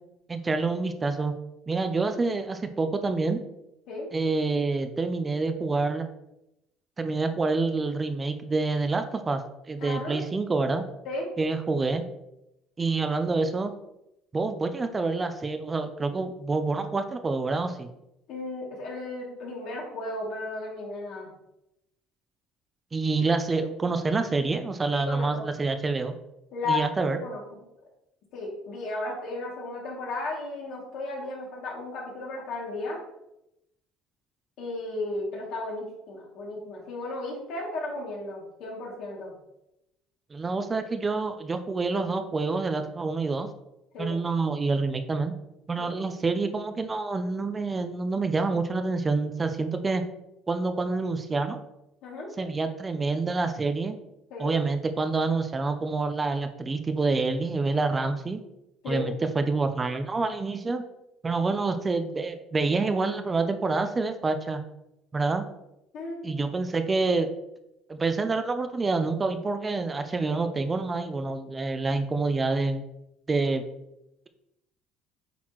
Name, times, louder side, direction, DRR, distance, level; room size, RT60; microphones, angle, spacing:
voice 1, 0.3-1.3 1.7-3.4 4.1-6.1 7.0-9.4 9.7-10.9 11.4-12.0 12.8-13.7 14.3-17.9 22.9-26.1 26.7-27.2 40.3-43.5 44.0-45.3 45.7-50.0 50.5-51.6 52.4-54.0 54.4-58.4 58.9-60.8 61.2-64.6 65.1-65.4 66.2-67.3 67.9-72.8 73.3-73.6, right 3 dB, 20° right, 8 dB, 0.5 m, -27 dB
voice 2, 9.8-10.2 11.0-11.3 18.3-21.3 24.9-25.5 26.5-27.4 28.3-33.0 34.6-39.3 43.9-44.2 45.8-46.0 52.0-52.5 54.3-54.5 58.8-59.1 65.9-66.2, left 2 dB, 65° left, -2 dB, 2.4 m, -34 dB
8.4 x 4.2 x 3.0 m, 0.87 s
cardioid pair, 130°, 0 cm